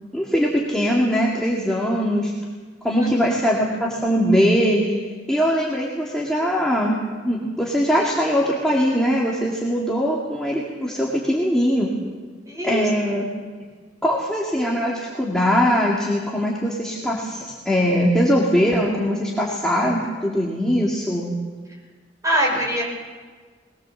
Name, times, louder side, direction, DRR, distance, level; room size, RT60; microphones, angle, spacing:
voice 1, 0.1-2.3 2.8-5.0 5.3-7.0 7.2-11.9 12.6-13.3 14.0-21.3, equal, 5° left, -5 dB, 2.3 m, -21 dB
voice 2, 12.5-12.9 22.2-22.8, equal, 20° right, -2 dB, 6.3 m, -22 dB
21.0 x 19.5 x 7.2 m, 1.5 s
head